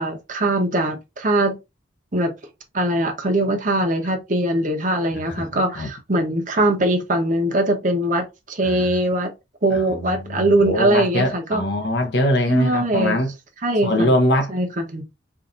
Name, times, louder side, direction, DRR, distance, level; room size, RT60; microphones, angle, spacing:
voice 1, 0.0-1.6 2.1-2.3 2.7-9.3 9.6-11.6 12.5-13.2 13.6-14.2 14.5-15.0, right 1 dB, 45° right, 0.9 m, -21 dB
voice 2, 5.1-5.5 5.8-5.9 8.6-8.9 9.7-13.3 13.8-14.5, left 1 dB, 60° left, 0.8 m, -22 dB
4.7 x 2.6 x 2.5 m
head